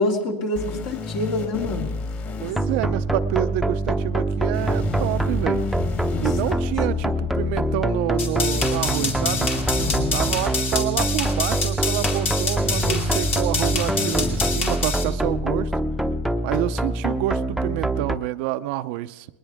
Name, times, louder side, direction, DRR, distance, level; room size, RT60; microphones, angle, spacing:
voice 1, 0.0-1.9 2.3-2.9 6.1-6.6 9.8-10.2, left 2 dB, 60° left, 1 dB, 3.1 m, -27 dB
sound 1, 0.5-2.5 4.5-6.5 8.5-10.5 12.5-14.5 16.5-16.6, left 4 dB, 40° left, 2.9 m, -31 dB
voice 2, 2.4-5.6 6.2-9.5 10.1-15.7 16.4-19.3, right 15 dB, 60° right, 13 dB, 0.6 m, -28 dB
sound 2, 2.6-18.2, right 1 dB, ahead, 0.8 m, -25 dB
sound 3, 8.2-15.0, left 4 dB, 85° left, 2.6 m, -27 dB
20.5 x 20.0 x 3.5 m, 1.1 s
hypercardioid pair, 110°, 7 cm